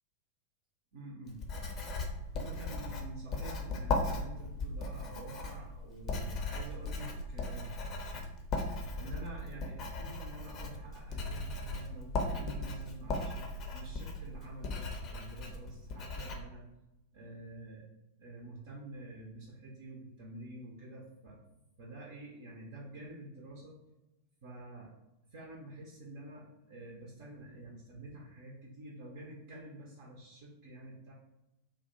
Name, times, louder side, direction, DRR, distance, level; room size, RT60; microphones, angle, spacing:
voice 1, 0.9-1.4 2.2-7.7 9.0-16.7 17.1-17.9 18.2-21.4 21.8-23.8 24.4-24.9 25.3-31.1, right 1 dB, 50° right, -2 dB, 0.6 m, -48 dB
Writing, 1.3-16.3, left 2 dB, 35° left, 0.5 m, -37 dB
2.5 x 2.1 x 3.7 m, 0.93 s
figure-of-eight pair, 90°, 0 cm